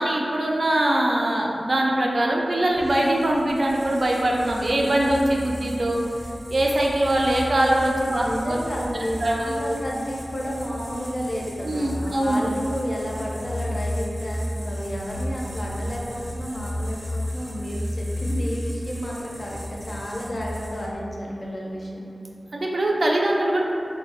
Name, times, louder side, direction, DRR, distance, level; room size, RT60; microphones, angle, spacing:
voice 1, 0.0-6.0 6.5-8.6 8.9-9.6 11.6-12.4 22.5-23.7, right 1 dB, 55° right, -2 dB, 0.4 m, -22 dB
sound 1, 2.7-21.1, equal, 5° right, 0.7 m, -34 dB
voice 2, 8.1-22.1, equal, 45° left, -3 dB, 0.5 m, -31 dB
3.1 x 2.0 x 3.4 m, 2.5 s
wide cardioid pair, 90°, 0 cm